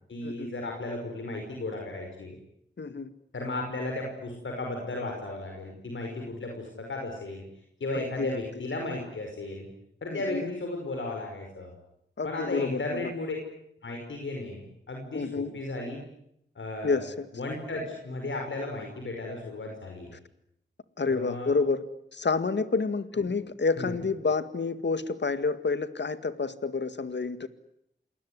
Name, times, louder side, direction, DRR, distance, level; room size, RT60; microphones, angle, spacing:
voice 1, 0.1-2.4 3.3-7.4 7.8-9.7 10.0-11.7 12.2-13.4 13.8-16.0 16.6-17.1 17.3-20.1 21.1-21.6 23.8-23.9, left 2 dB, 90° left, 1 dB, 5.7 m, -35 dB
voice 2, 2.8-3.1 7.9-8.4 10.1-10.5 12.2-13.1 15.1-15.5 16.8-17.3 21.0-21.8 22.1-27.5, left 4 dB, 70° left, 12 dB, 2.0 m, -29 dB
28.5 x 20.0 x 9.7 m, 0.76 s
cardioid pair, 45°, 19 cm